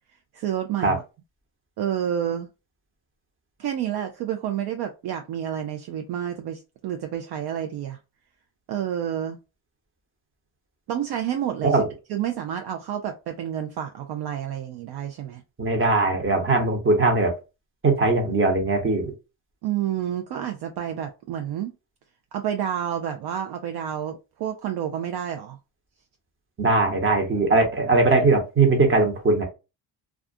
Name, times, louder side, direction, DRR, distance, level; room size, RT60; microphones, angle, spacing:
voice 1, 0.3-1.0 1.8-2.5 3.6-8.0 8.7-9.4 10.9-11.8 12.1-15.4 19.6-21.7 22.3-25.6, right 10 dB, 60° right, 0.5 m, -29 dB
voice 2, 15.6-17.3 17.8-19.1 26.6-29.4, right 3 dB, 30° right, 1.0 m, -20 dB
2.4 x 2.4 x 2.5 m
cardioid pair, 95°, 44 cm